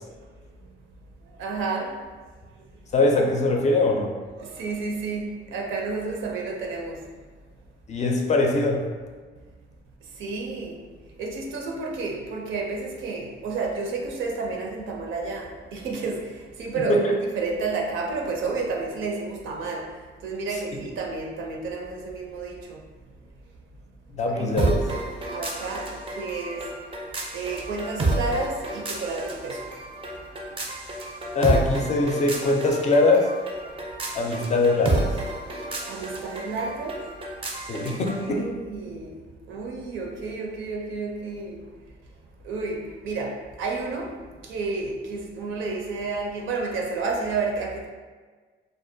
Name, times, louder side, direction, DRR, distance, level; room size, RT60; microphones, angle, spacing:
voice 1, 1.3-2.0 4.4-7.0 10.1-10.8 11.2-17.0 17.3-19.9 20.2-22.8 24.3-26.7 27.3-29.6 35.9-37.0 37.8-37.9 38.2-39.2 39.5-41.6 42.4-44.1 44.4-47.9, right 3 dB, 80° right, 0 dB, 0.5 m, -31 dB
voice 2, 2.9-4.1 7.9-8.8 16.9-17.1 24.2-24.7 31.3-33.3 34.1-35.1 37.7-38.5, left 2 dB, 35° left, 1 dB, 0.4 m, -22 dB
sound 1, 24.6-38.3, right 2 dB, 25° right, 0.4 m, -30 dB
2.5 x 2.2 x 2.6 m, 1.4 s
cardioid pair, 90°, 20 cm